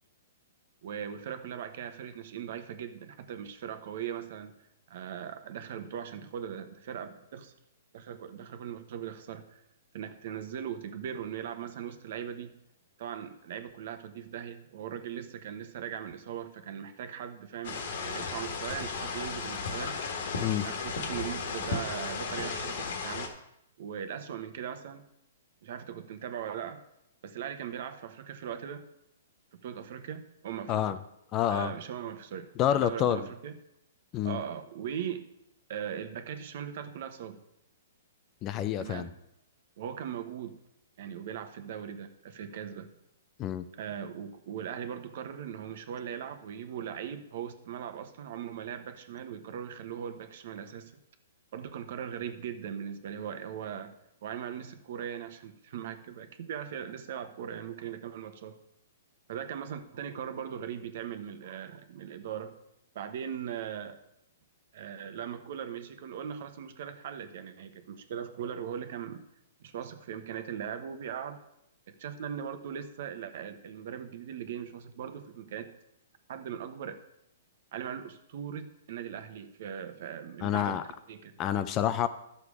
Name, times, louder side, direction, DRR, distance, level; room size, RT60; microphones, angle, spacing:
voice 1, 0.8-4.5 4.9-7.5 7.9-9.6 9.9-12.5 13.0-19.9 20.6-23.3 23.8-25.0 25.6-26.8 27.2-28.8 29.6-30.8 31.5-33.6 34.2-35.3 35.7-37.4 38.8-39.1 39.8-40.5 41.0-42.9 43.7-50.9 51.5-53.9 54.2-58.6 59.3-62.5 62.9-64.0 64.7-69.2 69.6-71.4 71.9-75.7 76.3-77.0 77.7-81.3, right 8 dB, 55° right, 9 dB, 1.1 m, -39 dB
sound 1, 17.6-23.3, left 5 dB, 60° left, 1.8 m, -35 dB
voice 2, 31.3-31.7 32.6-33.3 34.1-34.4 38.4-39.1 43.4-43.7 80.4-80.8 81.4-82.1, left 10 dB, 25° left, 13 dB, 0.5 m, -28 dB
11.5 x 6.9 x 4.9 m, 0.80 s
hypercardioid pair, 150°, 0 cm